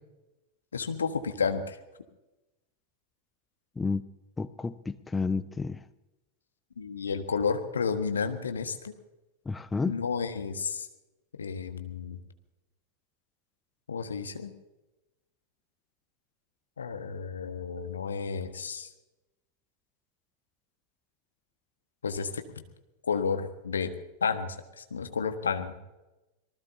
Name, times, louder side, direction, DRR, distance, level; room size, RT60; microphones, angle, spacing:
voice 1, 0.7-1.8 6.8-8.9 9.8-10.9 11.4-12.2 13.9-14.5 16.8-18.9 22.0-22.4 23.0-23.9 24.2-25.7, left 5 dB, 70° left, 1.5 m, -31 dB
voice 2, 4.4-5.8 9.5-10.0, left 4 dB, 10° left, 0.6 m, -31 dB
26.5 x 19.5 x 2.8 m
figure-of-eight pair, 90°, 0 cm